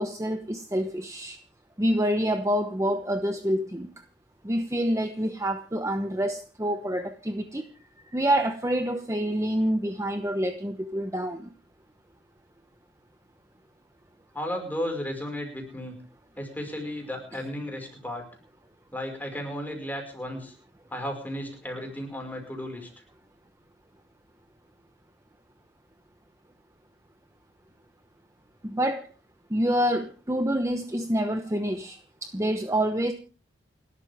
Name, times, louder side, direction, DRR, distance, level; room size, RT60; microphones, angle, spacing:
voice 1, 0.0-1.4 1.8-3.9 4.4-7.6 8.0-11.5 28.6-29.1 29.5-33.1, equal, 15° right, 7 dB, 1.0 m, -27 dB
voice 2, 14.3-16.0 16.4-18.2 18.9-20.5 20.9-22.9, equal, 10° left, 2 dB, 5.3 m, -34 dB
29.5 x 12.5 x 3.6 m, 0.38 s
head